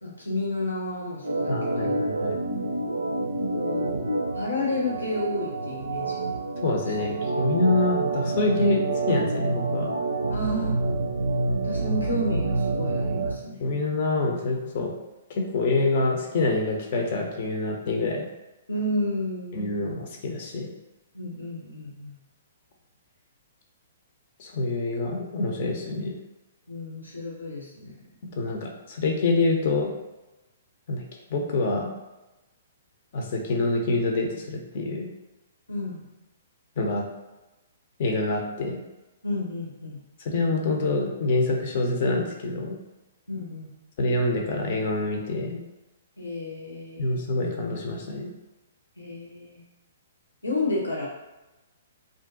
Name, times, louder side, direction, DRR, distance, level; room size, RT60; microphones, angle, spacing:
voice 1, 0.0-1.9 3.4-4.0 4.3-6.3 6.9-7.0 10.3-10.8 11.6-13.6 18.7-19.7 21.1-22.2 26.7-28.0 35.7-36.1 39.2-40.0 43.3-43.8 46.2-47.2 49.0-49.6 50.4-51.1, left 1 dB, 90° left, -5 dB, 1.0 m, -31 dB
Organ, 1.2-13.4, right 2 dB, 80° right, 0.4 m, -27 dB
voice 2, 1.5-2.4 6.6-9.9 13.6-14.9 15.3-18.3 19.5-20.7 24.4-26.2 28.2-29.9 30.9-31.0 31.3-31.9 33.1-35.1 36.8-37.1 38.0-38.8 40.2-42.8 44.0-45.6 47.0-48.3, left 2 dB, 50° left, 1 dB, 0.7 m, -26 dB
2.5 x 2.2 x 3.8 m, 1.1 s
figure-of-eight pair, 125°, 0 cm